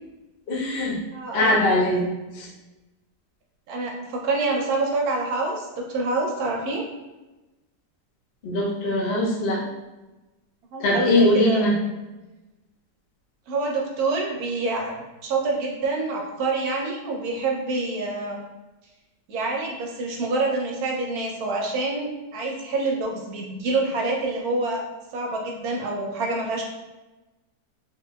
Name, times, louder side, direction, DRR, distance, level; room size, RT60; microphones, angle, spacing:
voice 1, 0.5-1.0 1.3-2.1 2.3-2.5 8.4-9.6 10.8-11.7, left 1 dB, 80° left, -3 dB, 0.5 m, -21 dB
voice 2, 1.1-1.6 3.7-6.8 10.7-11.6 13.5-14.9 15.2-18.4 19.3-24.8 25.1-26.6, right 3 dB, 70° right, 0 dB, 1.0 m, -26 dB
3.2 x 2.9 x 2.2 m, 1.1 s
omnidirectional pair, 1.8 m